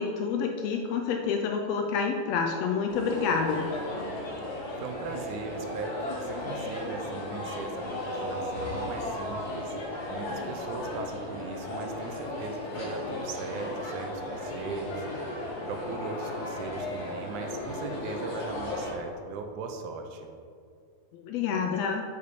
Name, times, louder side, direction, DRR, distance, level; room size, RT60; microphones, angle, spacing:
voice 1, 0.0-3.7 21.1-22.0, left 5 dB, 80° left, 3 dB, 1.5 m, -28 dB
sound 1, 2.9-18.9, left 1 dB, 65° left, 0.9 m, -35 dB
voice 2, 4.8-9.8 10.1-15.3 15.6-20.3, right 4 dB, 85° right, 4 dB, 2.0 m, -39 dB
6.9 x 4.9 x 4.6 m, 2.3 s
omnidirectional pair, 3.5 m